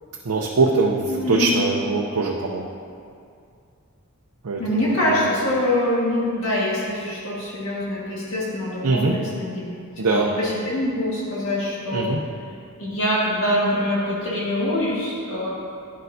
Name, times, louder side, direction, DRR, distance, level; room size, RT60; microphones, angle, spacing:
voice 1, 0.2-2.6 4.4-5.4 8.8-9.1 10.0-10.3 11.9-12.2, right 3 dB, 90° right, -1 dB, 0.6 m, -22 dB
voice 2, 1.1-1.5 4.6-9.6 10.0-12.1 12.8-15.5, left 1 dB, 60° left, -7 dB, 1.7 m, -24 dB
10.5 x 6.4 x 2.7 m, 2.3 s
head